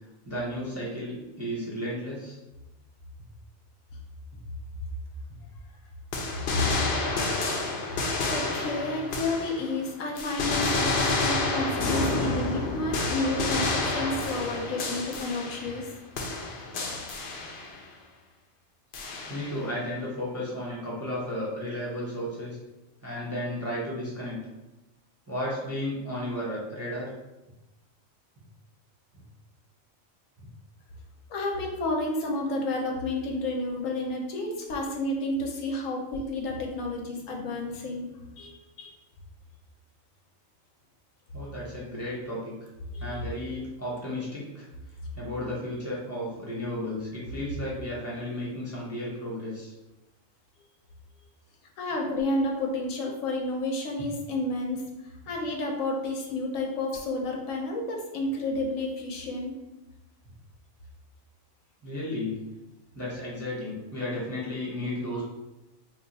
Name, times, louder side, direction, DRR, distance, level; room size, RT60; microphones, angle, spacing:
voice 1, 0.2-2.4 19.3-22.6 23.0-24.4 25.3-27.1 41.3-42.5 43.0-44.7 45.1-49.7 51.9-52.0 61.8-62.4 62.9-65.2, left 1 dB, 15° right, -7 dB, 0.5 m, -33 dB
sound 1, 6.1-9.8 10.2-15.9 16.2-17.8 18.9-19.7, left 3 dB, 60° left, 0.7 m, -29 dB
voice 2, 8.2-15.9 31.3-38.1 38.4-38.9 42.9-43.2 51.8-59.5, left 2 dB, 80° left, 1 dB, 1.1 m, -31 dB
2.9 x 2.3 x 3.9 m, 0.99 s
omnidirectional pair, 1.4 m